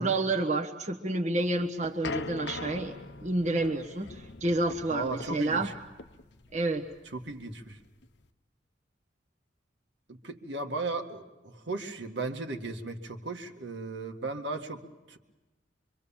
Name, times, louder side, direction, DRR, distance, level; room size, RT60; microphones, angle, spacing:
voice 1, 0.0-5.7 6.5-6.8, right 2 dB, 40° right, 3 dB, 1.3 m, -29 dB
sound 1, 1.4-8.2, left 3 dB, 70° left, 0.9 m, -42 dB
voice 2, 4.9-5.6 7.1-7.8 10.1-15.2, right 2 dB, 75° right, 3 dB, 1.9 m, -36 dB
25.0 x 24.5 x 7.3 m, 1.1 s
head